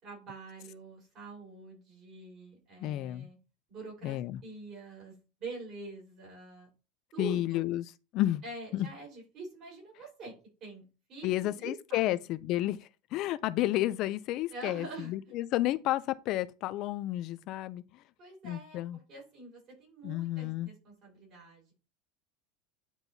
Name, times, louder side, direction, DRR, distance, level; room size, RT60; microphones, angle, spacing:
voice 1, 0.0-3.4 3.7-6.7 7.1-7.7 8.4-10.3 10.6-10.8 11.1-12.2 14.5-15.1 18.2-18.8 19.1-21.7, right 2 dB, 40° right, 4.0 m, -45 dB
voice 2, 2.8-3.3 4.0-4.4 7.2-8.4 8.7-8.9 11.2-18.0 18.4-19.0 20.0-20.7, left 15 dB, 45° left, 0.3 m, -31 dB
9.5 x 4.4 x 2.7 m
supercardioid pair, 160°, 0 cm